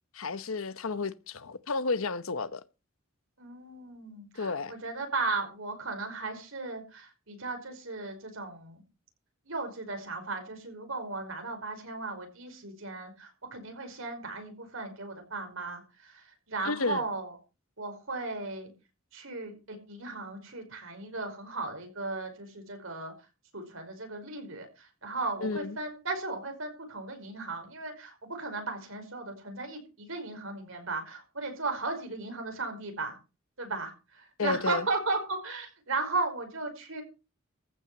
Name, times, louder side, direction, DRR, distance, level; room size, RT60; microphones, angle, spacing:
voice 1, 0.1-2.6 4.4-4.7 16.6-17.1 25.4-25.8 34.4-34.9, left 3 dB, 80° left, 1.0 m, -31 dB
voice 2, 3.4-8.8 9.5-16.1 16.5-17.3 17.8-18.7 19.1-23.1 23.5-33.2 33.6-37.0, right 3 dB, 70° right, 5.2 m, -36 dB
15.0 x 6.1 x 8.0 m
head